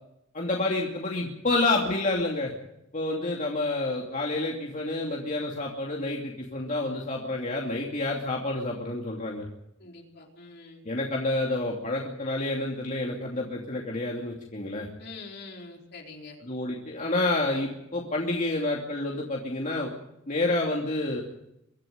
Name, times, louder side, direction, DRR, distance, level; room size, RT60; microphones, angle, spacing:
voice 1, 0.3-2.5 2.9-9.5 10.8-14.9 16.4-19.9 20.3-21.2, left 2 dB, 40° left, -1 dB, 2.7 m, -29 dB
voice 2, 9.8-10.8 15.0-16.4, left 3 dB, 55° left, 0 dB, 4.4 m, -44 dB
24.5 x 12.5 x 9.5 m, 0.83 s
head